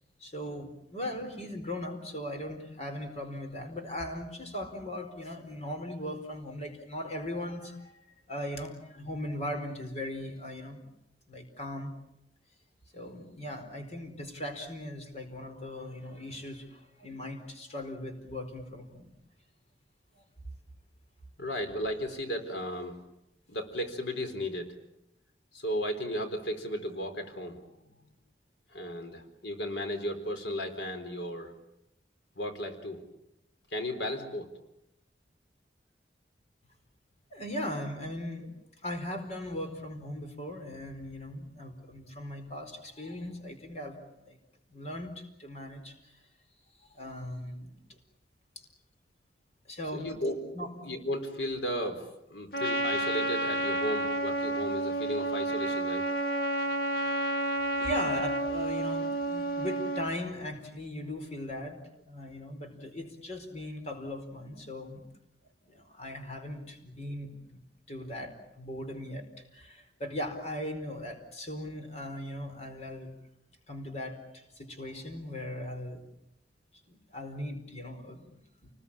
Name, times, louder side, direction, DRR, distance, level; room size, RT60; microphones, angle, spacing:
voice 1, 0.2-10.9 11.3-11.9 12.9-19.1 20.1-20.2 37.3-38.5 38.8-44.4 44.7-46.2 46.9-47.7 48.6-48.7 49.7-50.1 50.5-50.7 57.8-61.8 62.0-65.0 65.6-67.6 67.9-69.3 69.5-73.1 73.7-76.0 76.9-78.7, left 1 dB, 40° left, 5 dB, 4.5 m, -39 dB
voice 2, 21.4-22.9 23.5-24.7 25.5-27.6 28.7-31.5 32.4-33.0 33.7-34.5 49.9-50.4 50.8-56.0, equal, 90° left, 6 dB, 4.1 m, -35 dB
Trumpet, 52.5-60.1, right 1 dB, 60° left, 2.2 m, -30 dB
29.5 x 20.5 x 8.8 m, 0.86 s
head